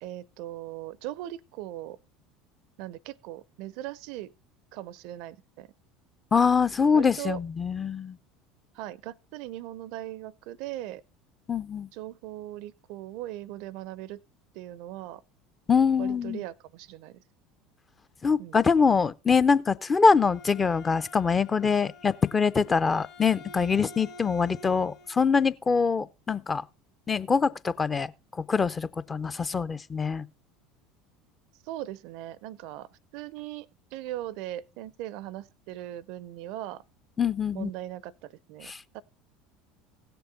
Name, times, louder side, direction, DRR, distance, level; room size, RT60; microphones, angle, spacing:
voice 1, 0.0-2.0 2.8-4.3 4.7-5.7 6.9-7.4 8.7-11.0 11.9-14.2 14.5-15.2 16.0-17.2 18.4-18.6 31.6-36.8 37.5-39.0, right 14 dB, 60° right, 0.4 m, -39 dB
voice 2, 6.3-8.2 11.5-11.9 15.7-16.4 18.2-26.6 27.1-30.3 37.2-37.7 38.6-38.8, left 5 dB, 25° left, 0.5 m, -24 dB
Bowed string instrument, 19.9-25.2, left 3 dB, 60° left, 2.3 m, -49 dB
16.0 x 6.9 x 3.8 m
figure-of-eight pair, 70°, 0 cm